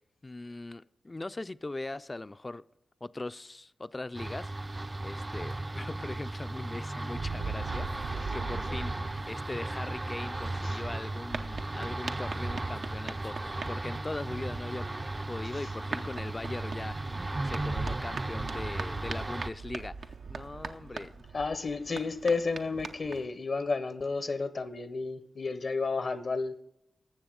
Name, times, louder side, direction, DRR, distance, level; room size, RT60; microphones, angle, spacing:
voice 1, 0.2-2.6 3.0-4.5 4.8-14.9 15.3-21.2, left 2 dB, 30° left, 0.4 m, -40 dB
sound 1, 4.1-19.5, right 2 dB, 30° right, 0.4 m, -36 dB
sound 2, 7.1-23.3, right 4 dB, 85° right, 0.6 m, -41 dB
voice 2, 21.3-26.5, left 4 dB, 60° left, 0.7 m, -32 dB
19.0 x 7.2 x 3.8 m
cardioid pair, 50°, 0 cm